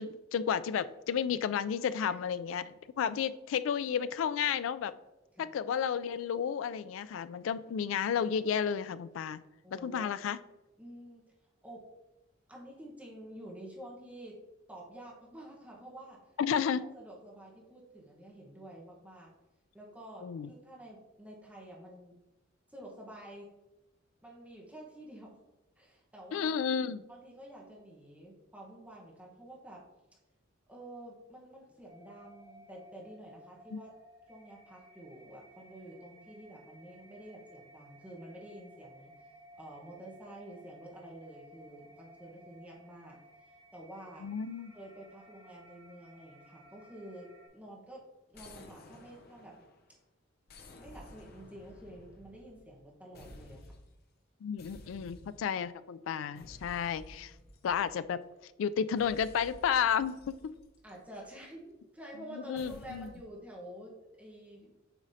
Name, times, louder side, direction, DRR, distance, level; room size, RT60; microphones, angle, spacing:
voice 1, 0.0-5.0 5.4-9.4 9.7-10.4 16.4-16.8 20.2-20.5 26.3-27.1 33.7-33.8 44.2-44.7 54.4-57.3 57.6-58.2 58.6-60.5 62.3-63.1, left 7 dB, 75° left, 14 dB, 0.3 m, -32 dB
voice 2, 9.6-10.1 10.8-11.2 11.6-11.8 12.5-14.4 14.7-16.2 16.5-16.6 16.9-19.3 19.7-22.1 22.7-23.5 24.2-25.4 25.8-26.7 27.1-29.8 30.7-33.9 34.3-39.1 39.5-43.2 43.7-44.3 44.7-49.6 50.8-53.7 55.0-55.1 57.1-57.4 60.8-64.7, right 1 dB, 5° right, -3 dB, 1.0 m, -49 dB
sound 1, 31.9-47.5, equal, 30° right, 1.9 m, -58 dB
sound 2, 48.3-49.9 50.5-52.8 53.1-54.0 54.6-55.6 56.3-58.2 59.0-61.4 62.5-63.3, left 1 dB, 50° left, 0.7 m, -54 dB
7.3 x 5.0 x 2.7 m, 1.0 s
head